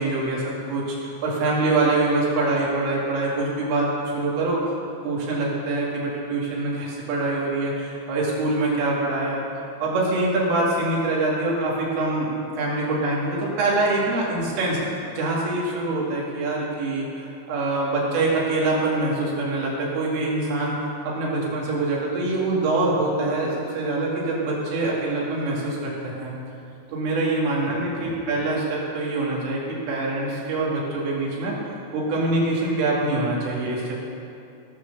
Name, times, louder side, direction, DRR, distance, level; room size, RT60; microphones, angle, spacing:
voice 1, 0.0-4.7 5.0-9.4 9.8-12.3 12.6-14.8 15.2-26.3 26.9-31.6 31.9-34.1, right 2 dB, 85° right, -4 dB, 5.0 m, -24 dB
18.0 x 6.3 x 6.7 m, 2.6 s
omnidirectional pair, 5.6 m